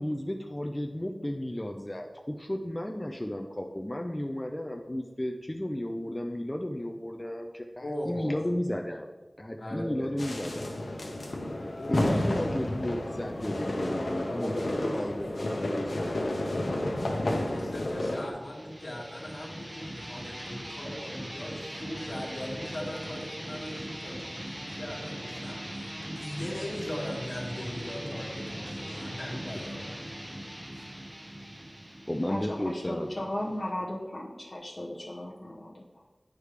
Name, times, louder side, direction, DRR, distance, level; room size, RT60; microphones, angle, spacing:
voice 1, 0.0-9.1 9.4-10.7 11.9-16.2 29.5-29.6 31.1-31.2 31.5-31.6 32.1-33.3, left 1 dB, 20° left, 2 dB, 0.5 m, -34 dB
voice 2, 7.8-8.3 9.6-10.1 10.6-10.7 11.8-12.5 13.9-15.0 17.1-30.0 30.7-30.8, left 1 dB, 65° left, -3 dB, 1.5 m, -39 dB
sound 1, 10.2-18.3, left 1 dB, 90° left, 0.8 m, -31 dB
sound 2, 18.3-33.7, equal, 20° right, 0.8 m, -40 dB
voice 3, 32.3-35.8, left 1 dB, 45° left, -4 dB, 0.8 m, -36 dB
8.2 x 4.9 x 3.3 m, 1.2 s
wide cardioid pair, 55°, 0 cm